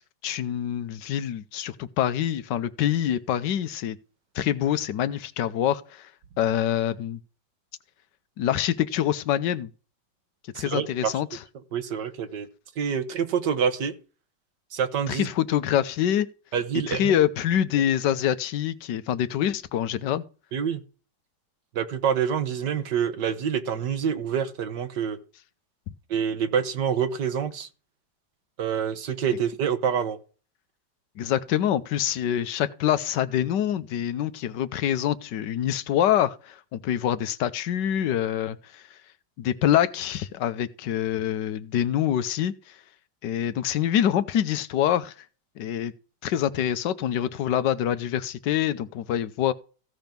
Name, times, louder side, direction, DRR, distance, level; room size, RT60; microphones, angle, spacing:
voice 1, 0.2-4.0 4.3-6.1 6.4-7.2 8.4-9.7 10.5-11.4 15.1-16.3 16.9-20.2 31.2-38.8 39.4-42.8 43.2-45.1 45.6-45.9 46.2-49.5, left 10 dB, 85° left, 1.4 m, -25 dB
voice 2, 10.6-11.1 11.7-12.5 12.8-13.9 14.7-15.3 16.5-17.1 20.5-20.8 21.7-25.2 26.1-27.7 28.6-30.2, right 7 dB, 80° right, 1.8 m, -26 dB
15.5 x 5.2 x 5.9 m
omnidirectional pair, 1.8 m